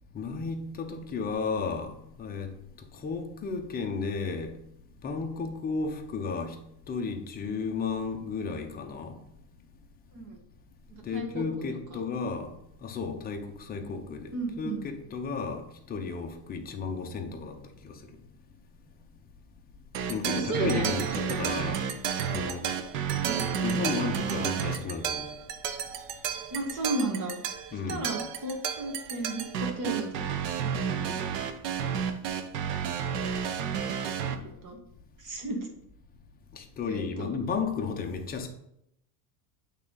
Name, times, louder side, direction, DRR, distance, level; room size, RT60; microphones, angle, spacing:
voice 1, 0.1-2.5 2.9-4.6 5.0-6.6 6.9-9.2 11.0-12.5 12.8-18.0 20.1-21.8 22.3-22.7 23.6-25.3 27.7-28.1 36.5-38.5, left 5 dB, 20° left, 0.6 m, -33 dB
voice 2, 11.1-11.4 11.9-12.0 14.3-14.8 20.0-20.9 23.2-23.4 26.5-27.3 27.9-30.3 30.6-31.2 34.3-34.8 35.2-35.7 36.9-37.3, right 2 dB, 40° right, 1.6 m, -34 dB
sound 1, 19.9-34.4, right 8 dB, 80° right, 0.9 m, -31 dB
8.3 x 3.6 x 3.9 m
supercardioid pair, 145°, 47 cm